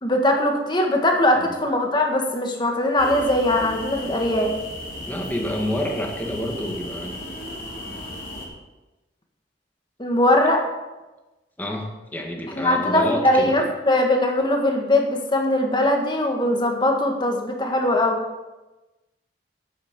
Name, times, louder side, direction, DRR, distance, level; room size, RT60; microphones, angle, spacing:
voice 1, 0.0-4.5 10.0-10.6 12.6-18.2, left 1 dB, 25° left, 2 dB, 1.6 m, -21 dB
sound 1, 3.0-8.5, left 1 dB, 50° left, 3.1 m, -35 dB
voice 2, 5.0-7.2 7.9-8.1 11.6-13.7, equal, 10° left, 1 dB, 1.6 m, -29 dB
8.8 x 8.8 x 6.8 m, 1.1 s
head